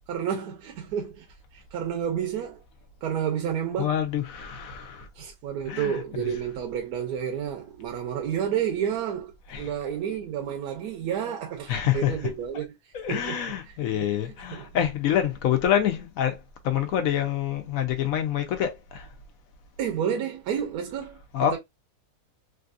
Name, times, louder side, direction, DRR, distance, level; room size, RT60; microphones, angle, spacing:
voice 1, 0.1-1.3 1.5-2.6 3.0-4.0 5.1-13.4 13.7-14.1 14.5-14.7 19.8-21.6, right 8 dB, 90° right, 1.1 m, -30 dB
voice 2, 3.8-5.1 5.7-6.3 9.5-9.7 11.7-12.2 12.9-19.1 21.3-21.6, left 10 dB, 70° left, 1.1 m, -27 dB
3.3 x 2.6 x 2.4 m
omnidirectional pair, 1.6 m